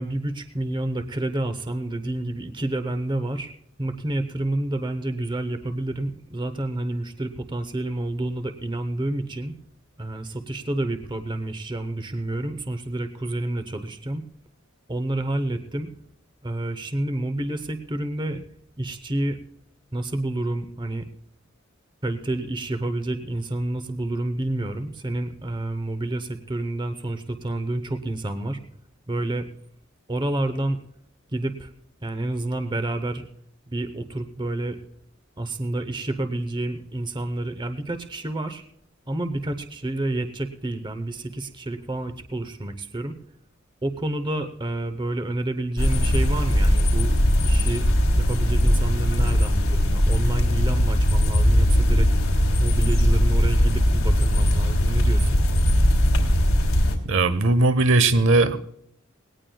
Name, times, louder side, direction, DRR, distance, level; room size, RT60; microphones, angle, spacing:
voice 1, 0.0-3.5 3.8-9.5 10.0-14.2 14.9-15.9 16.4-18.4 18.8-19.4 19.9-21.1 22.0-28.6 29.1-29.5 30.1-30.8 31.3-31.7 32.0-33.3 33.7-34.8 35.4-38.6 39.1-43.2 43.8-47.1 47.4-47.9 48.2-52.1 52.6-55.4, right 1 dB, 20° right, 9 dB, 0.8 m, -29 dB
sound 1, 45.8-57.0, equal, 90° left, 3.0 m, -19 dB
voice 2, 57.0-58.6, right 2 dB, 65° right, 13 dB, 1.0 m, -18 dB
19.5 x 18.0 x 2.3 m, 0.68 s
head